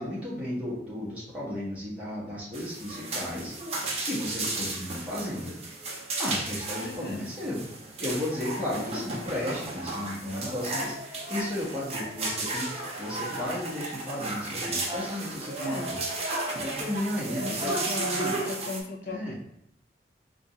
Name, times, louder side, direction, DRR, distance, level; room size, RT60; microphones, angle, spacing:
voice 1, 0.0-3.5 4.1-5.5 6.2-7.6 8.0-12.7 13.0-18.3 19.1-19.3, left 1 dB, 10° right, -9 dB, 1.4 m, -34 dB
sound 1, 2.5-18.8, right 2 dB, 35° right, 0.7 m, -34 dB
voice 2, 6.8-7.2 8.7-9.1 15.6-15.9 17.4-19.3, left 2 dB, 50° left, 3 dB, 0.4 m, -36 dB
3.7 x 2.5 x 4.0 m, 0.74 s
head